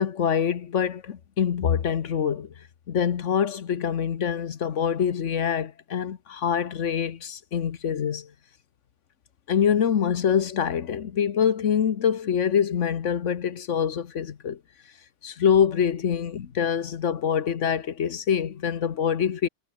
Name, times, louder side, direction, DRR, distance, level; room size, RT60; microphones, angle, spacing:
voice 1, 0.0-2.5 2.9-8.3 9.5-14.6 15.2-19.5, left 8 dB, 80° left, 1.4 m, -25 dB
omnidirectional pair, 1.3 m